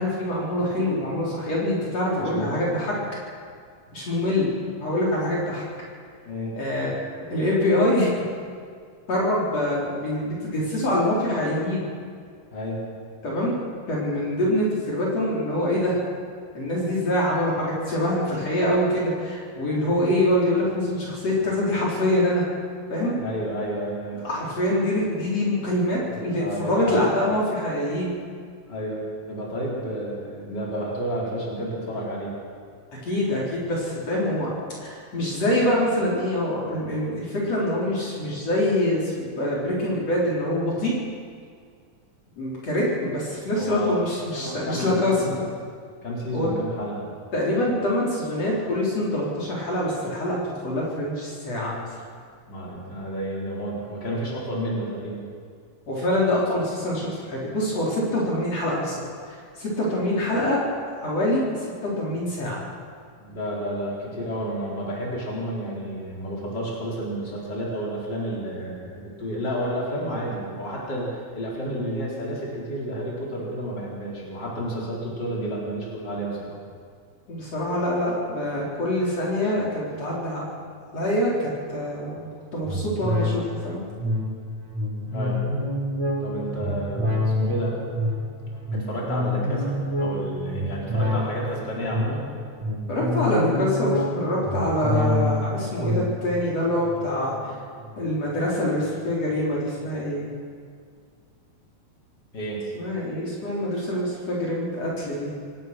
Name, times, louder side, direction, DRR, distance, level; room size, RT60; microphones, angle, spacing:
voice 1, 0.0-2.9 3.9-4.5 4.8-5.6 6.6-6.9 7.3-8.1 9.1-11.8 13.2-13.5 13.9-16.0 16.5-22.4 22.9-23.2 24.2-28.1 33.0-34.5 34.8-40.9 42.4-45.3 46.3-46.5 47.3-51.8 55.9-60.6 61.0-61.4 61.8-62.6 77.3-80.4 80.9-83.8 92.9-97.5 98.0-100.3 102.7-105.3, left 1 dB, 55° left, -5 dB, 5.5 m, -25 dB
voice 2, 2.1-2.7 6.3-6.5 12.5-12.8 23.2-24.2 26.1-27.1 28.7-32.3 43.5-44.0 44.3-45.4 46.0-47.0 52.5-55.2 63.2-76.6 85.1-85.4 86.2-87.8 88.7-92.3 102.3-102.6, equal, 35° left, -4 dB, 5.4 m, -31 dB
sound 1, 82.6-98.4 98.8-98.9, left 1 dB, 60° right, 6.5 m, -28 dB
27.0 x 19.0 x 6.3 m, 2.1 s
omnidirectional pair, 3.4 m